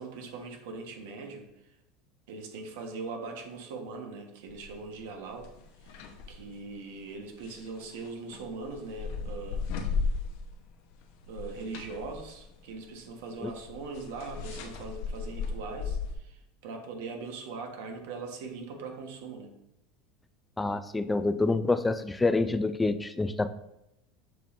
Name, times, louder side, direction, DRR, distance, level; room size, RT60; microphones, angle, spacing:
voice 1, 0.0-1.5 2.3-5.5 5.8-9.6 11.3-19.5, right 4 dB, 80° right, 4 dB, 1.1 m, -41 dB
sound 1, 4.5-4.8 5.3-6.4 7.3-10.7 11.0-16.2, left 4 dB, 65° left, 0.8 m, -36 dB
voice 2, 20.6-23.5, left 3 dB, 10° left, 12 dB, 0.3 m, -27 dB
7.6 x 5.2 x 2.5 m, 0.84 s
supercardioid pair, 145°, 0 cm